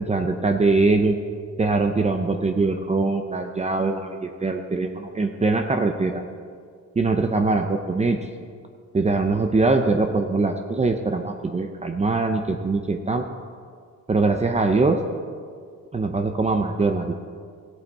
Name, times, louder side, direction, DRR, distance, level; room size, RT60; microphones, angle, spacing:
voice 1, 0.1-1.2 1.6-6.2 7.0-8.2 8.9-13.2 14.1-15.0 15.9-17.1, right 3 dB, 25° right, 4 dB, 0.7 m, -22 dB
16.5 x 8.1 x 4.2 m, 2.1 s
cardioid pair, 100°, 29 cm